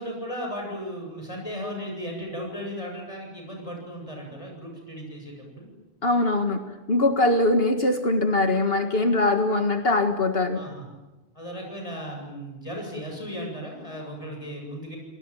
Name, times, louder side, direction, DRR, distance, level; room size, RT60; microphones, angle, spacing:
voice 1, 0.0-5.7 10.5-10.9 11.3-15.0, equal, 30° left, 1 dB, 8.2 m, -36 dB
voice 2, 6.0-6.6 6.9-10.6, left 2 dB, 65° left, 6 dB, 2.0 m, -22 dB
27.5 x 20.0 x 9.2 m, 1.1 s
omnidirectional pair, 1.1 m